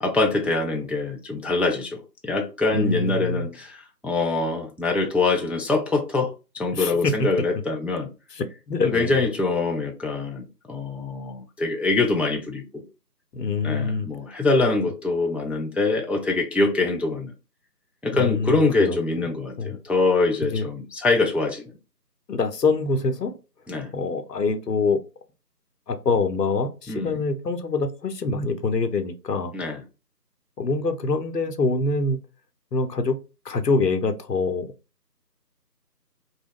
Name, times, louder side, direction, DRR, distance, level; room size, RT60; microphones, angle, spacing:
voice 1, 0.0-8.1 8.8-12.8 13.6-17.3 18.0-21.7 23.7-23.9 26.9-27.2 29.5-29.8, left 3 dB, 5° right, 0.3 m, -24 dB
voice 2, 2.7-3.5 6.7-7.3 8.3-9.2 13.3-14.1 18.1-19.0 19.6-19.8 20.5-20.7 22.3-23.3 23.9-25.0 25.9-29.5 30.6-32.2 32.7-33.2 33.5-34.7, left 3 dB, 75° left, 0.6 m, -25 dB
2.3 x 2.0 x 3.4 m
figure-of-eight pair, 180°, 50 cm